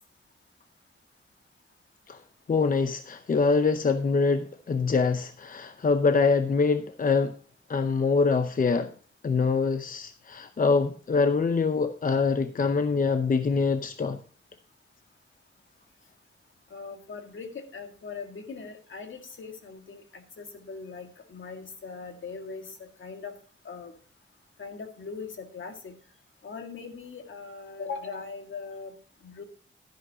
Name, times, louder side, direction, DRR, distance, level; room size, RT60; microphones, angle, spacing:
voice 1, 2.5-7.3 7.7-8.9 9.2-14.2, left 4 dB, 45° left, 9 dB, 0.7 m, -24 dB
voice 2, 16.7-23.4 23.6-24.0 24.6-25.9 26.4-28.9 29.2-29.4, left 5 dB, 75° left, 5 dB, 1.9 m, -40 dB
11.5 x 10.5 x 2.8 m, 0.40 s
cardioid pair, 80°, 20 cm